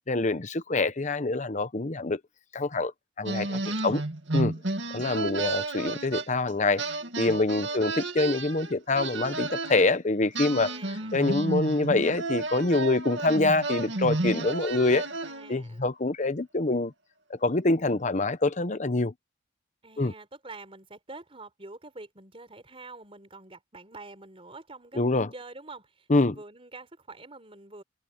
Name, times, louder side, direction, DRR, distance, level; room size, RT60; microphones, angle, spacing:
voice 1, 0.0-2.2 2.5-2.9 3.2-4.0 4.3-4.5 4.9-6.8 7.2-10.7 11.1-15.0 15.5-16.9 17.3-19.1 20.0-20.1 24.9-25.3 26.1-26.4, left 2 dB, 40° left, 1.0 m, -25 dB
sound 1, 3.3-6.5 6.8-9.9 10.3-15.6, right 2 dB, 75° right, 2.5 m, -32 dB
voice 2, 3.6-4.1 7.6-7.9 10.6-11.2 15.2-15.9 19.8-27.8, right 3 dB, 30° right, 4.4 m, -46 dB
head